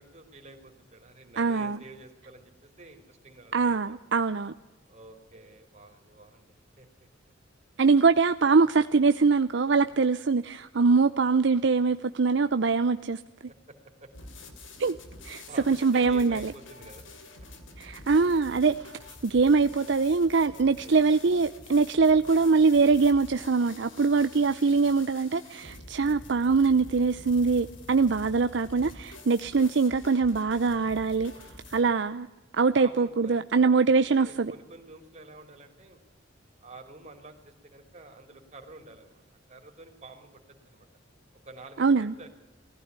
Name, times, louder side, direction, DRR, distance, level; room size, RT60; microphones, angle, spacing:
voice 1, 0.0-3.9 4.9-6.9 8.5-8.7 9.9-10.0 13.5-14.1 15.5-17.0 19.8-20.1 20.5-20.9 23.8-24.1 25.5-25.8 32.8-36.0 36.6-39.2 39.5-40.9 41.5-42.3, right 2 dB, 35° right, 4 dB, 3.4 m, -49 dB
voice 2, 1.4-1.8 3.5-4.5 7.8-13.2 14.8-15.0 15.2-16.5 17.8-18.9 19.2-31.3 31.7-32.3 32.5-34.5 41.8-42.1, right 4 dB, 65° right, 11 dB, 0.6 m, -23 dB
sound 1, 14.1-31.8, left 2 dB, 80° left, 2.9 m, -47 dB
19.5 x 15.0 x 9.6 m, 1.0 s
head